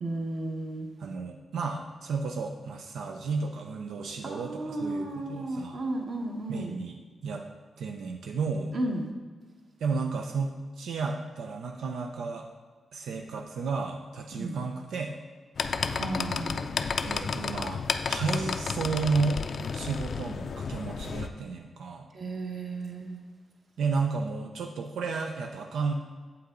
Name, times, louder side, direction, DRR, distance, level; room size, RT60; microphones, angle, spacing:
voice 1, 0.0-0.9 4.2-6.8 8.7-9.1 14.3-14.6 15.9-16.7 22.1-23.2, right 2 dB, 45° right, 2 dB, 1.3 m, -34 dB
voice 2, 1.0-5.8 6.5-7.5 7.8-8.7 9.8-12.5 12.9-15.2 17.0-19.4 19.7-22.1 23.8-25.9, right 4 dB, 90° right, 3 dB, 0.6 m, -32 dB
sound 1, 15.6-21.3, left 5 dB, 50° left, 0.4 m, -32 dB
8.5 x 8.1 x 3.8 m, 1.5 s
wide cardioid pair, 165°, 0 cm